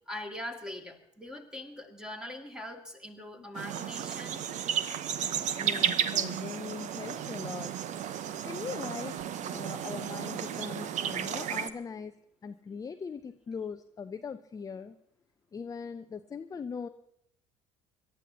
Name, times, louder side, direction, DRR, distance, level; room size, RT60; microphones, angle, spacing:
voice 1, 0.1-4.5 5.5-5.6, left 1 dB, 5° right, 3 dB, 2.3 m, -42 dB
sound 1, 3.5-11.7, right 9 dB, 40° right, 0.9 m, -33 dB
voice 2, 5.6-7.7 8.4-12.1 12.4-15.0 15.5-16.9, left 6 dB, 20° left, 9 dB, 0.6 m, -40 dB
26.5 x 12.5 x 2.9 m, 0.74 s
figure-of-eight pair, 60°, 18 cm